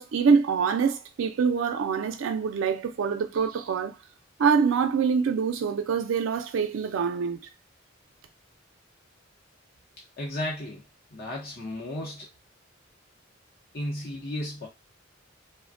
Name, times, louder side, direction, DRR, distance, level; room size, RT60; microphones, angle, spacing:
voice 1, 0.0-4.0 4.4-7.4, right 6 dB, 85° right, 0.4 m, -25 dB
voice 2, 10.2-10.8 11.1-12.3 13.7-14.7, left 1 dB, 50° left, 0.7 m, -34 dB
3.3 x 2.1 x 2.5 m
head